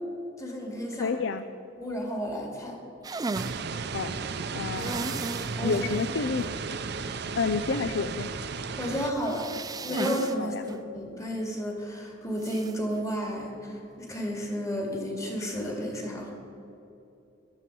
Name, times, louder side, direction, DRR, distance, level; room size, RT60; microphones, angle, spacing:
voice 1, 0.4-1.1 1.8-2.8 5.6-5.8 8.8-9.5 9.8-16.3, equal, 15° left, 0 dB, 2.2 m, -32 dB
voice 2, 1.0-1.4 3.9-4.1 4.5-5.3 5.6-6.5 7.4-8.3 10.4-10.7, left 4 dB, 75° left, 11 dB, 0.5 m, -29 dB
sound 1, 3.0-3.6 4.8-5.5 5.9-6.0 6.4-6.5 9.2-10.4 10.7-10.8 12.4-12.7, right 3 dB, 20° right, 0.3 m, -34 dB
sound 2, 3.3-9.1, right 4 dB, 60° right, 0.6 m, -34 dB
14.5 x 11.5 x 4.7 m, 2.8 s
head